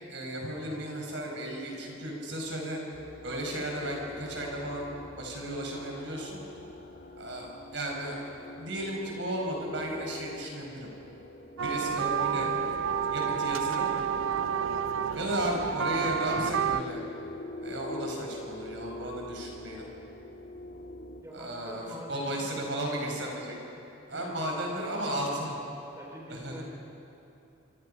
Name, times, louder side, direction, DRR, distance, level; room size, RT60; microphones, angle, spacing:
voice 1, 0.1-2.8 3.2-6.4 7.2-8.3 8.6-10.9 11.6-12.5 13.1-13.9 15.1-17.0 17.6-19.9 21.3-23.6 24.1-25.5 26.3-26.6, right 1 dB, 65° right, 0 dB, 5.6 m, -34 dB
sound 1, 2.9-21.2, left 1 dB, 55° left, 1.9 m, -44 dB
sound 2, 11.6-16.8, right 7 dB, 85° right, 0.5 m, -29 dB
voice 2, 21.2-23.1 24.1-25.5 26.0-26.6, equal, 15° right, -2 dB, 3.2 m, -46 dB
26.5 x 25.5 x 5.6 m, 2.8 s
head